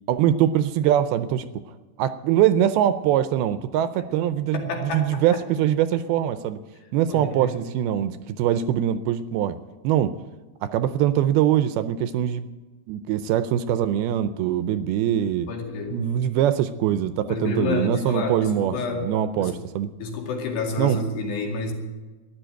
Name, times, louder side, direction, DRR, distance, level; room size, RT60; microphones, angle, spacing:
voice 1, 0.1-1.5 2.0-6.6 6.9-9.6 9.8-10.1 10.6-12.5 12.9-15.5 15.9-19.9 20.8-21.0, right 11 dB, 80° right, 12 dB, 2.3 m, -23 dB
voice 2, 4.5-5.4 7.1-7.6 15.5-16.0 17.3-19.1 19.4-19.6 20.0-21.7, left 3 dB, 80° left, 1 dB, 4.5 m, -29 dB
13.5 x 11.0 x 9.0 m, 1.2 s
omnidirectional pair, 4.7 m